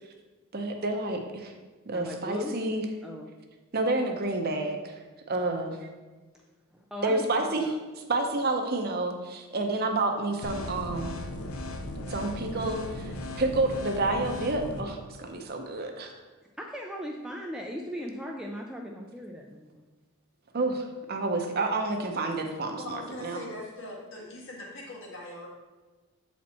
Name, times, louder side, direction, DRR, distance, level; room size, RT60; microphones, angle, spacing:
voice 1, 0.5-1.5 1.9-2.8 3.7-5.0 5.3-5.8 7.0-7.7 8.1-11.1 12.1-16.1 20.5-23.4, right 2 dB, 45° right, 4 dB, 0.7 m, -29 dB
voice 2, 1.9-2.5 3.0-3.3 6.9-7.7 16.6-19.8, equal, 5° right, 0 dB, 0.4 m, -38 dB
sound 1, 10.4-14.8, left 1 dB, 75° left, 0.7 m, -37 dB
voice 3, 22.7-25.5, left 1 dB, 60° left, -3 dB, 1.7 m, -41 dB
7.3 x 4.3 x 4.2 m, 1.3 s
head